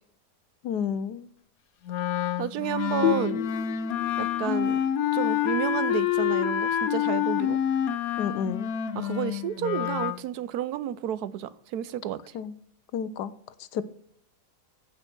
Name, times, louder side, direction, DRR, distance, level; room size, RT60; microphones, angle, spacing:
voice 1, 0.6-1.3 8.2-8.7 12.3-12.5 12.9-13.3 13.7-13.8, left 7 dB, 85° left, 15 dB, 1.3 m, -30 dB
Wind instrument woodwind instrument, 1.9-10.2, left 10 dB, 70° left, 1.2 m, -27 dB
voice 2, 2.4-3.4 4.2-4.8 5.1-7.6 9.0-12.2, right 11 dB, 75° right, 17 dB, 1.1 m, -31 dB
sound 1, 3.0-6.4, left 12 dB, 50° left, 0.7 m, -32 dB
15.0 x 5.7 x 6.0 m, 0.68 s
omnidirectional pair, 1.7 m